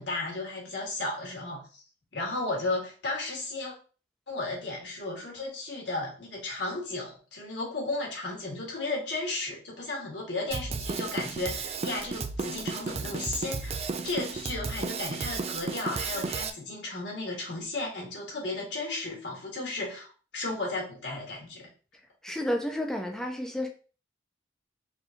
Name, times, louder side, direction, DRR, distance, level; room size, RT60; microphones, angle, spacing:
voice 1, 0.0-1.8 2.1-3.7 4.3-21.7, left 2 dB, 75° left, 1.9 m, -34 dB
Drum kit, 10.5-16.5, right 4 dB, 35° right, 0.3 m, -33 dB
voice 2, 22.2-23.7, left 1 dB, 5° left, 0.6 m, -31 dB
4.3 x 3.3 x 2.8 m
head